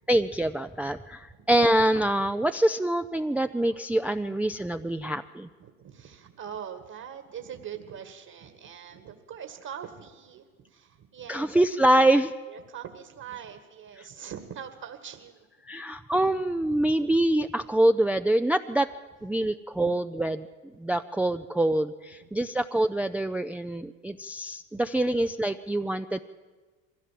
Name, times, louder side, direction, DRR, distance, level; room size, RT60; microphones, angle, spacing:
voice 1, 0.1-5.5 11.3-12.3 15.7-18.9 19.2-20.5 20.8-26.2, right 1 dB, 5° right, 7 dB, 0.5 m, -25 dB
voice 2, 5.4-11.5 11.8-12.0 12.5-15.5 22.2-22.3 25.8-25.9, right 8 dB, 45° right, 7 dB, 2.0 m, -42 dB
22.0 x 15.5 x 7.6 m, 1.4 s
hypercardioid pair, 80°, 40 cm